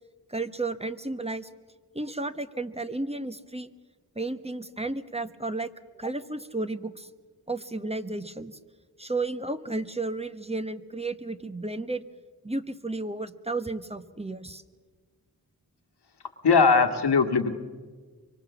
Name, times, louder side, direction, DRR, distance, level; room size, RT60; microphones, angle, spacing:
voice 1, 0.3-1.5 1.9-3.7 4.1-5.7 6.0-7.1 7.5-8.6 9.0-12.0 12.4-14.6, right 2 dB, 15° right, 10 dB, 1.2 m, -33 dB
voice 2, 16.4-17.5, left 5 dB, 85° left, 6 dB, 1.8 m, -20 dB
25.0 x 24.0 x 7.1 m, 1.5 s
wide cardioid pair, 60°, 39 cm